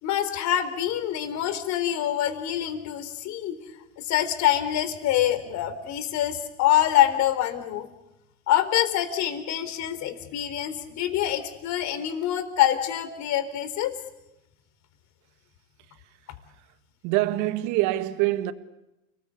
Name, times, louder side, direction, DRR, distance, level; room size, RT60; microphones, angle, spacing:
voice 1, 0.0-3.6 4.0-7.9 8.5-14.0, left 12 dB, 40° left, 3.9 m, -25 dB
voice 2, 17.0-18.5, right 16 dB, 45° right, 1.7 m, -24 dB
30.0 x 20.0 x 8.6 m
hypercardioid pair, 115°, 41 cm